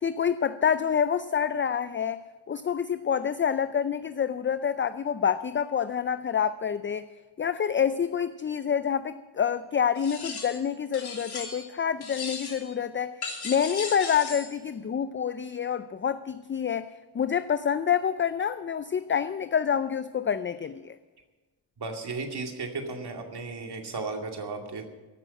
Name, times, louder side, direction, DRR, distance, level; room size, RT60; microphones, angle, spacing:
voice 1, 0.0-7.1 7.4-16.9 17.1-21.0, left 8 dB, 25° left, 13 dB, 0.4 m, -27 dB
sound 1, 10.0-10.6 10.9-11.7 12.0-12.7 13.2-14.5, left 4 dB, 55° left, 2.9 m, -37 dB
voice 2, 21.8-24.8, right 3 dB, 55° right, 3 dB, 2.4 m, -35 dB
15.5 x 6.2 x 9.7 m, 1.2 s
cardioid pair, 70°, 47 cm